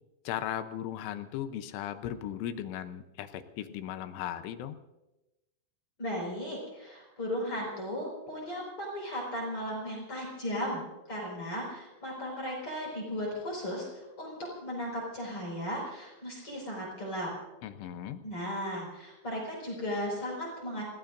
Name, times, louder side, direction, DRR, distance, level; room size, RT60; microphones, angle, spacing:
voice 1, 0.3-4.8 17.6-18.2, left 11 dB, 85° left, 9 dB, 3.3 m, -37 dB
voice 2, 6.0-17.3 18.2-20.8, equal, 30° left, -2 dB, 5.8 m, -36 dB
29.5 x 17.5 x 2.6 m, 0.99 s
omnidirectional pair, 5.4 m